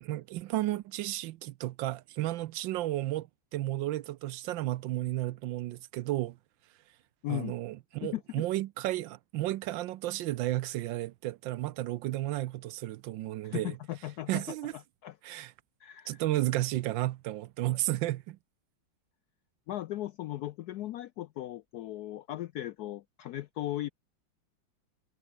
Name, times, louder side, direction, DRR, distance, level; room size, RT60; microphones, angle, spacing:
voice 1, 0.0-3.3 3.5-6.4 7.3-13.8 14.3-14.7 15.2-15.5 16.1-18.4, right 15 dB, 75° right, 1.3 m, -33 dB
voice 2, 7.2-7.6 8.0-8.4 13.4-14.4 14.7-15.2 15.8-16.2 19.7-23.9, left 14 dB, 75° left, 0.9 m, -37 dB
omnidirectional pair, 2.2 m